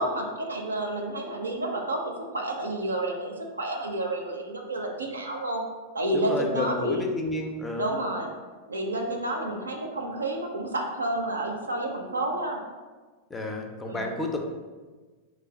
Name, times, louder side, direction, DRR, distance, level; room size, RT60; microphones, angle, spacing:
voice 1, 0.0-5.6 5.9-7.1 7.8-8.3 8.7-12.6 13.8-14.1, right 1 dB, 75° right, 2 dB, 0.4 m, -30 dB
voice 2, 6.1-7.9 13.3-14.4, left 2 dB, 15° left, 2 dB, 0.4 m, -30 dB
3.1 x 2.2 x 3.5 m, 1.4 s
figure-of-eight pair, 90°, 0 cm